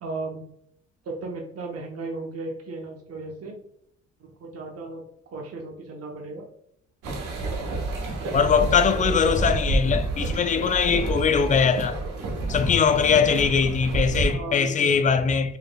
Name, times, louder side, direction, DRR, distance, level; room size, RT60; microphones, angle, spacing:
voice 1, 0.0-0.5 1.0-3.6 4.2-6.5 13.1-13.3 14.3-15.0, right 3 dB, 50° right, 0.9 m, -36 dB
sound 1, 7.0-14.3, right 2 dB, 85° right, 1.1 m, -28 dB
voice 2, 8.3-12.0 12.5-15.6, left 6 dB, 25° left, 0.4 m, -21 dB
4.8 x 3.2 x 2.3 m
cardioid pair, 90°, 30 cm